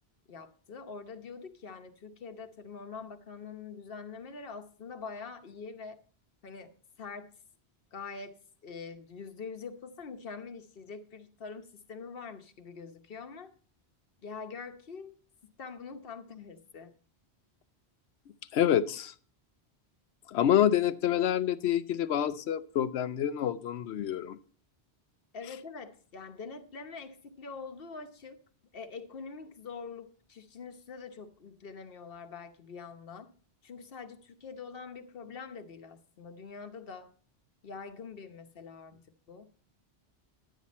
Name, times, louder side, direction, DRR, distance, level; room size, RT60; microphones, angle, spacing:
voice 1, 0.3-6.0 6.4-6.7 7.0-7.3 7.9-13.5 14.2-15.1 15.6-16.9 25.3-28.4 28.7-33.3 33.6-37.1 37.6-39.5, left 5 dB, 60° left, 1.2 m, -44 dB
voice 2, 18.5-19.1 20.3-24.4, left 10 dB, 85° left, 0.9 m, -27 dB
11.5 x 9.3 x 4.1 m
omnidirectional pair, 1.1 m